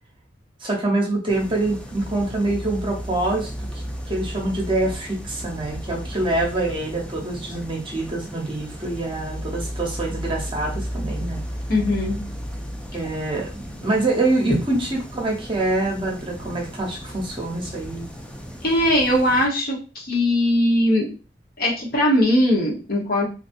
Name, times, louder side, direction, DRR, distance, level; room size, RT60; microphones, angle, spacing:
voice 1, 0.6-3.5 4.1-11.4 12.9-18.1, right 2 dB, 30° right, -1 dB, 0.9 m, -25 dB
sound 1, 1.3-19.5, equal, 5° left, 0.4 m, -34 dB
voice 2, 11.7-12.2 14.5-14.6 18.6-21.1 21.6-23.2, left 1 dB, 60° left, -2 dB, 1.1 m, -20 dB
3.1 x 2.6 x 2.6 m, 0.34 s
head